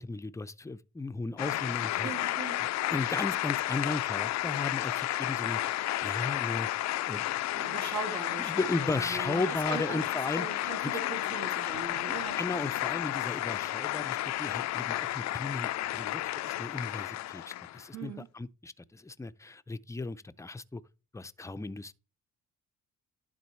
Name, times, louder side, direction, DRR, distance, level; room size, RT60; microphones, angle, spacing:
voice 1, 0.0-2.3 2.6-5.6 6.0-6.7 7.1-7.3 8.4-10.9 12.4-20.8 21.1-21.9, left 3 dB, 10° left, 0.5 m, -36 dB
sound 1, 1.4-17.9, left 15 dB, 65° left, 0.4 m, -32 dB
voice 2, 2.0-2.6 7.5-12.4 17.9-18.3, right 5 dB, 70° right, 2.3 m, -40 dB
11.5 x 3.9 x 4.4 m
cardioid pair, 90°, 30 cm